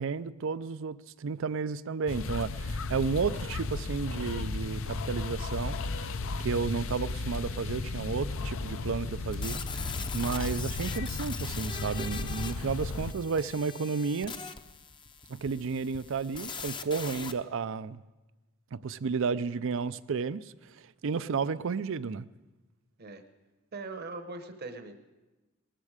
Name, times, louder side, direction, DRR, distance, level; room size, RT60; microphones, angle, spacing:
voice 1, 0.0-5.8 6.4-14.3 15.3-18.0 18.7-22.3, right 5 dB, 65° right, 0.5 m, -32 dB
sound 1, 2.1-13.1, left 3 dB, 70° left, 0.6 m, -35 dB
sound 2, 9.3-17.3, left 5 dB, 25° left, 0.6 m, -41 dB
voice 2, 23.7-24.9, right 3 dB, 50° right, 1.0 m, -40 dB
19.5 x 14.0 x 5.0 m
head